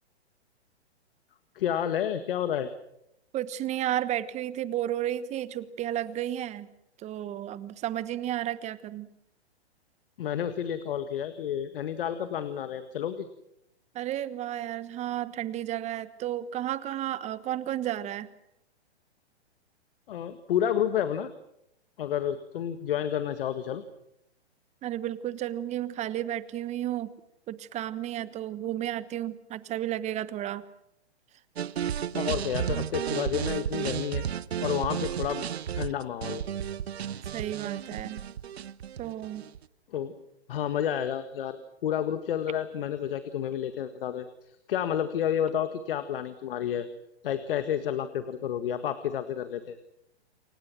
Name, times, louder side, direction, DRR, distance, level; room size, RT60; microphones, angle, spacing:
voice 1, 1.6-2.7 10.2-13.3 20.1-21.3 22.0-23.8 32.1-34.3 34.6-35.4 35.7-36.4 39.9-40.1 40.5-44.3 44.7-46.9 47.2-49.8, left 9 dB, 55° left, 11 dB, 1.8 m, -30 dB
voice 2, 3.3-6.7 7.0-9.1 13.9-18.3 24.8-27.1 27.5-30.6 37.3-38.2 39.0-39.4, right 12 dB, 20° right, 16 dB, 1.2 m, -32 dB
sound 1, 31.6-39.6, right 9 dB, 70° right, 1.0 m, -33 dB
28.5 x 24.0 x 6.2 m, 0.80 s
hypercardioid pair, 125°, 33 cm